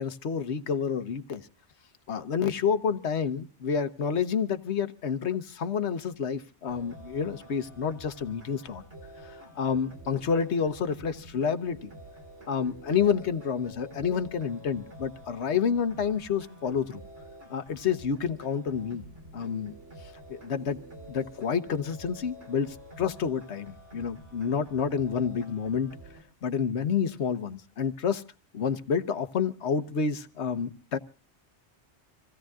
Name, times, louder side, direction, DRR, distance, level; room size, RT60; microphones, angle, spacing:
voice 1, 0.0-1.4 2.1-8.8 9.2-11.9 12.5-17.0 17.5-19.0 19.3-19.7 20.3-20.8 21.1-25.9 26.4-28.2 28.5-31.0, left 6 dB, 70° left, 10 dB, 1.4 m, -29 dB
sound 1, 6.7-26.2, right 1 dB, 90° right, 4.7 m, -48 dB
26.5 x 16.5 x 2.4 m, 0.36 s
omnidirectional pair, 1.2 m